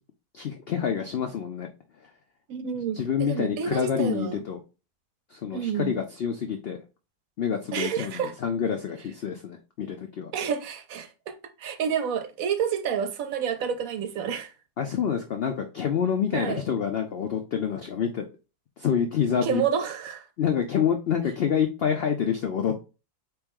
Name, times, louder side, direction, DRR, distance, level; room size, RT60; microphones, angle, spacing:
voice 1, 0.3-1.7 3.0-4.6 5.3-6.8 7.4-10.3 14.8-18.2 18.8-19.6 20.4-22.8, left 8 dB, 75° left, 0.5 m, -27 dB
voice 2, 2.5-4.4 5.5-5.9 7.7-8.3 10.3-14.5 16.3-16.6 19.4-20.3, right 7 dB, 70° right, 1.0 m, -29 dB
4.3 x 3.0 x 3.5 m
omnidirectional pair, 1.7 m